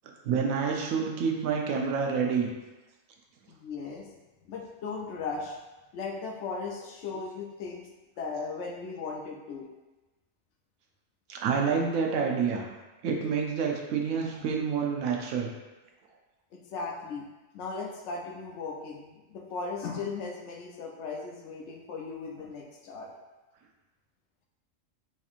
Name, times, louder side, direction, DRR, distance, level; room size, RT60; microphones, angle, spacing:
voice 1, 0.2-2.5 11.3-12.7 13.0-15.5, right 6 dB, 90° right, 1 dB, 1.0 m, -28 dB
voice 2, 3.5-4.1 4.4-5.6 5.9-7.9 8.2-9.7 14.4-14.5 16.5-17.3 17.5-23.1, left 4 dB, 65° left, 0 dB, 0.8 m, -37 dB
4.3 x 2.9 x 2.4 m, 1.1 s
omnidirectional pair, 1.4 m